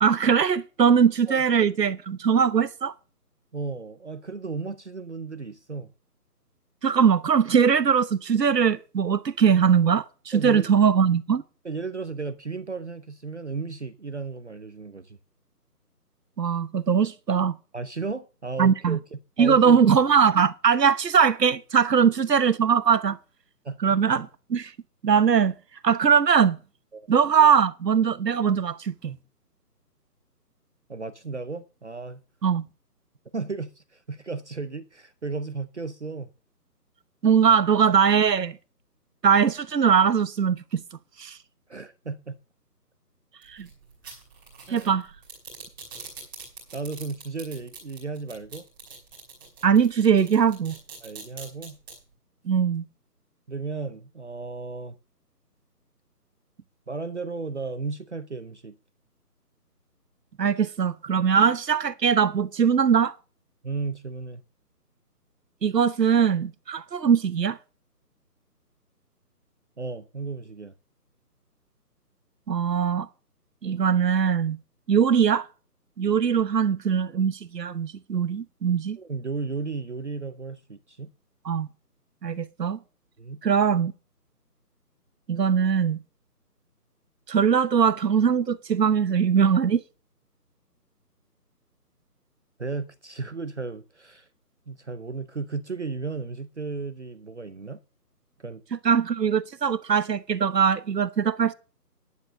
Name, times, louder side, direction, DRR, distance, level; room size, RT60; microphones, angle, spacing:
voice 1, 0.0-2.9 6.8-11.4 16.4-17.6 18.6-19.0 19.4-23.2 23.8-24.7 25.0-25.6 25.8-26.6 27.1-29.2 32.4-32.6 37.2-38.6 39.2-40.8 41.2-41.4 43.5-43.7 44.7-45.1 49.6-50.7 52.4-52.8 60.4-63.1 65.6-67.6 72.5-73.1 73.6-74.6 74.9-75.5 76.0-79.0 81.4-81.7 82.2-82.8 83.4-83.9 85.3-86.0 87.3-89.8 98.8-101.5, right 7 dB, 85° right, 1.1 m, -21 dB
voice 2, 3.5-5.9 10.3-10.7 11.6-15.2 17.7-19.8 23.6-23.8 26.9-27.1 30.9-32.2 33.3-36.3 41.7-42.4 44.7-44.9 46.7-48.7 51.0-51.8 53.5-55.0 56.9-58.7 63.6-64.4 69.8-70.7 79.0-81.1 83.2-83.4 92.6-94.3 94.7-97.8 98.4-98.6, right 4 dB, 45° right, 0.6 m, -34 dB
sound 1, 43.4-51.9, right 5 dB, 15° right, 2.6 m, -43 dB
10.5 x 6.8 x 6.2 m
hypercardioid pair, 175°, 48 cm